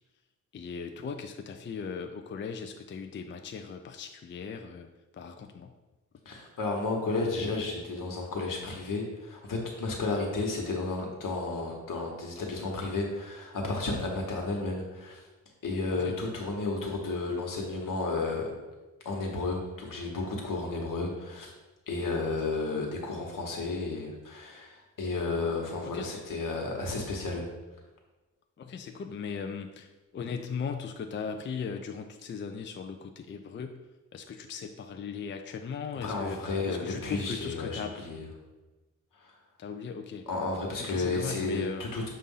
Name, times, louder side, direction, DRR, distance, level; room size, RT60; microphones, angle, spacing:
voice 1, 0.5-5.7 16.0-16.2 22.7-22.8 25.9-26.2 28.6-33.8 34.1-38.0 39.6-40.3 40.8-41.8, left 6 dB, 35° left, 5 dB, 0.4 m, -38 dB
voice 2, 6.2-15.2 15.6-18.5 19.0-21.5 21.9-27.4 36.0-38.3 39.2-39.3 40.3-42.1, left 3 dB, 80° left, 0 dB, 1.3 m, -32 dB
6.8 x 2.5 x 5.5 m, 1.1 s
wide cardioid pair, 155°, 32 cm